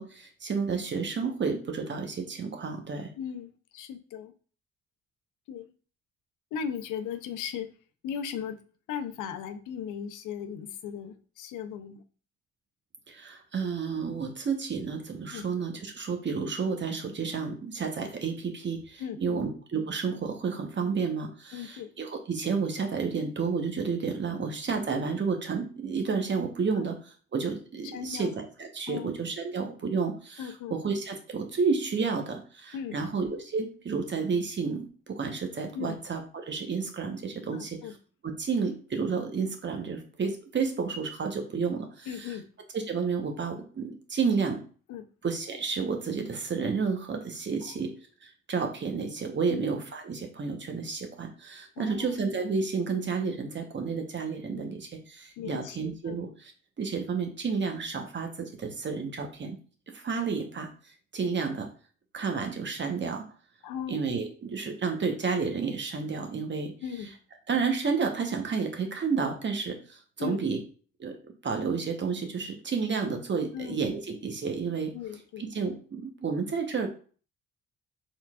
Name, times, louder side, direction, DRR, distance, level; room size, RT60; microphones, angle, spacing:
voice 1, 0.0-3.1 13.1-26.9 27.3-37.8 38.2-42.4 42.7-44.6 45.2-47.9 48.2-56.5 56.8-59.6 59.9-60.7 61.1-61.7 62.1-63.2 63.9-66.7 67.5-70.6 71.0-71.2 71.4-74.9 75.4-76.9, right 5 dB, 40° right, 4 dB, 1.0 m, -31 dB
voice 2, 3.2-4.3 5.5-5.7 6.5-7.7 8.0-8.6 8.9-12.0 15.3-15.5 19.0-19.4 21.5-21.9 24.3-24.4 26.8-26.9 27.9-28.3 28.9-29.1 30.4-30.8 32.7-33.1 35.7-36.0 37.5-37.9 42.1-42.5 44.9-45.0 47.6-47.8 49.5-49.7 51.8-52.1 54.6-54.7 55.4-55.8 56.1-56.2 63.6-64.0 66.8-67.1 70.2-70.4 73.5-73.8 74.9-75.4, left 8 dB, 85° left, 8 dB, 0.6 m, -37 dB
4.5 x 3.9 x 2.4 m, 0.40 s
cardioid pair, 90°, 30 cm